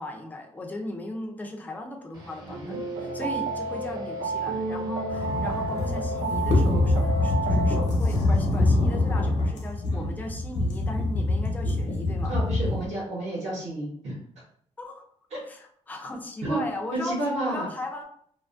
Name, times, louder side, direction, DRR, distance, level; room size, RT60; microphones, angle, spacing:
voice 1, 0.0-2.7 3.1-12.3 14.8-15.0 15.5-18.0, left 2 dB, 15° left, 3 dB, 0.3 m, -37 dB
sound 1, 2.1-11.8, equal, 35° right, 0.8 m, -46 dB
voice 2, 2.4-2.8 9.9-10.1 12.3-14.2 15.3-15.4 16.4-16.6 16.9-17.7, right 1 dB, 60° right, -6 dB, 0.9 m, -31 dB
sound 2, 2.5-7.8, right 3 dB, 85° right, 0.4 m, -31 dB
sound 3, 5.1-12.9, left 2 dB, 80° left, 0.7 m, -25 dB
2.5 x 2.3 x 2.4 m, 0.65 s
wide cardioid pair, 170°, 12 cm